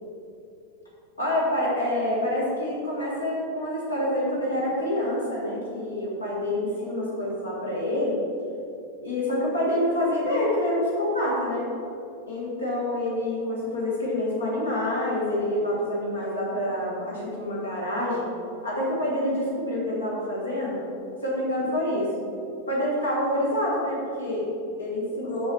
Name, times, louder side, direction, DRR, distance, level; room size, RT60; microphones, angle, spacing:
voice 1, 1.2-8.2 9.0-11.7 12.3-18.3 18.6-20.9 21.2-22.1 22.7-25.5, left 1 dB, 75° left, -6 dB, 1.5 m, -27 dB
7.0 x 6.5 x 3.3 m, 2.7 s
figure-of-eight pair, 90°, 0 cm